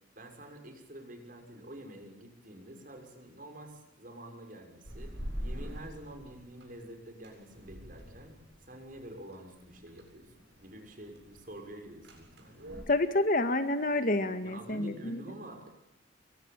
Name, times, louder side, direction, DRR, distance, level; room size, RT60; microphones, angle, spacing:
voice 1, 0.1-8.4 8.7-10.3 10.6-12.8 14.4-15.7, right 1 dB, 45° right, 5 dB, 6.5 m, -48 dB
sound 1, 4.8-12.8, equal, 60° right, 7.8 m, -45 dB
voice 2, 12.9-15.2, left 2 dB, 45° left, 9 dB, 2.0 m, -28 dB
28.0 x 24.0 x 9.0 m, 0.86 s
head